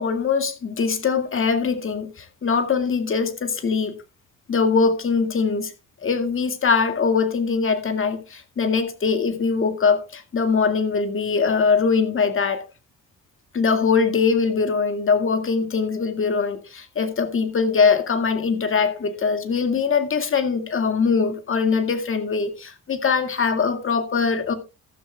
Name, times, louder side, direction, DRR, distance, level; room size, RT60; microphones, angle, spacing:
voice 1, 0.0-4.0 4.5-5.7 6.0-12.6 13.5-24.5, left 5 dB, 45° left, 2.0 m, -22 dB
14.0 x 13.0 x 2.3 m
cardioid pair, 90°, 30 cm